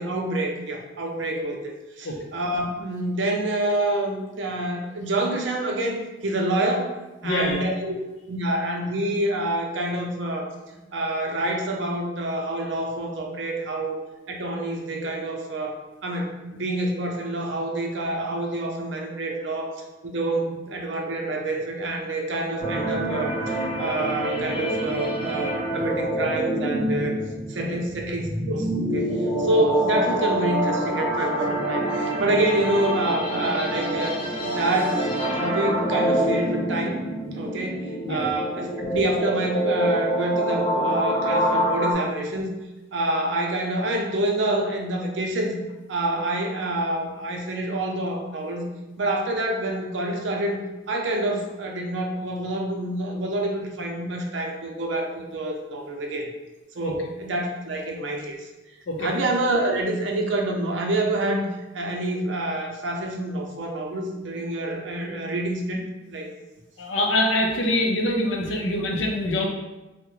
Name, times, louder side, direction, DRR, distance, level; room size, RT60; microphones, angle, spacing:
voice 1, 0.0-6.9 7.2-7.9 8.3-10.5 10.9-14.0 14.3-15.8 16.0-19.7 20.0-27.1 27.5-34.2 34.5-35.0 35.3-37.0 37.3-42.5 42.9-45.6 45.9-48.7 49.0-50.6 50.9-56.3 56.7-58.5 59.0-61.5 61.7-65.8 66.1-66.3, right 1 dB, 70° right, 1 dB, 0.5 m, -27 dB
voice 2, 7.2-7.7 27.6-27.8 38.0-38.3 56.8-56.9 58.9-59.1 66.8-69.5, left 1 dB, 75° left, 2 dB, 0.6 m, -24 dB
sound 1, 22.6-41.9, right 1 dB, 25° left, 0.6 m, -26 dB
3.6 x 2.1 x 3.0 m, 1.1 s
head